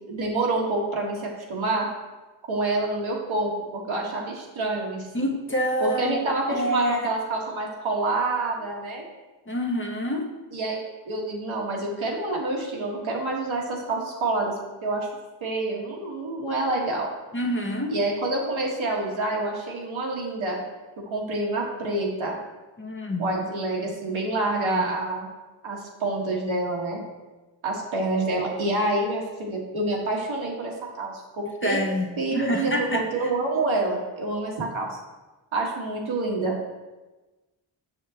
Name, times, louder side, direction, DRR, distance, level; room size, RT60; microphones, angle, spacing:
voice 1, 0.1-1.9 2.5-5.1 5.8-9.0 10.5-10.8 11.0-14.5 14.8-15.1 15.4-17.1 17.9-20.6 21.1-22.4 23.2-25.3 25.6-27.0 27.6-31.8 32.2-34.9 35.5-36.6, right 2 dB, 70° right, -2 dB, 1.5 m, -27 dB
voice 2, 5.1-6.2 6.5-7.0 9.5-10.2 17.3-17.9 22.8-23.2 24.7-24.8 31.6-32.1 32.3-33.0, equal, 25° left, 1 dB, 0.9 m, -26 dB
6.5 x 6.1 x 2.8 m, 1.2 s
cardioid pair, 50°, 49 cm